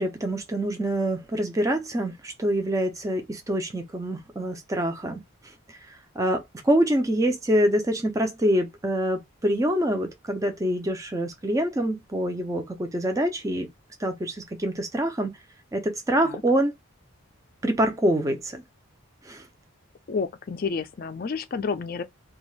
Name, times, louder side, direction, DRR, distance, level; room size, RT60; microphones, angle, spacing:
voice 1, 0.0-13.7 14.0-15.3 15.7-16.7 17.6-18.6 19.2-19.5, right 1 dB, 15° right, 0.4 m, -26 dB
voice 2, 20.1-22.0, left 5 dB, 45° left, 0.4 m, -30 dB
2.5 x 2.3 x 3.0 m
head